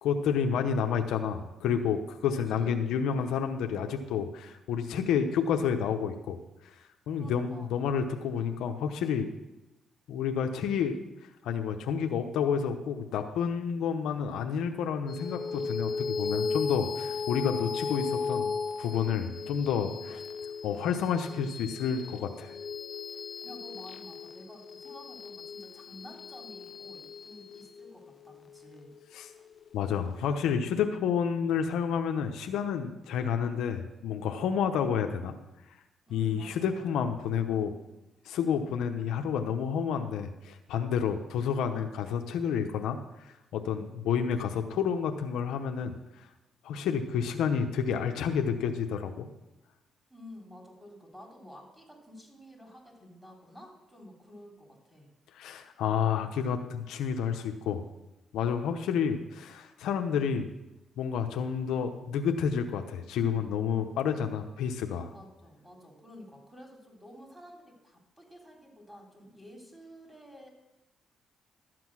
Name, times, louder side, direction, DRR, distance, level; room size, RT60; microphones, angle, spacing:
voice 1, 0.0-6.4 7.1-9.3 10.1-11.0 11.4-20.2 20.6-22.5 29.1-29.3 29.7-35.3 36.1-37.7 38.2-43.0 43.3-45.9 46.6-49.3 55.3-57.8 58.3-60.5 61.0-65.1, left 7 dB, 85° left, 6 dB, 0.8 m, -30 dB
voice 2, 2.3-3.3 7.1-7.8 23.4-28.9 36.1-37.0 50.1-55.1 65.1-70.5, left 1 dB, 5° right, 0 dB, 3.5 m, -51 dB
sound 1, 15.1-29.8, left 5 dB, 45° left, 0.7 m, -36 dB
12.5 x 7.8 x 6.2 m, 0.99 s
cardioid pair, 90°, 0 cm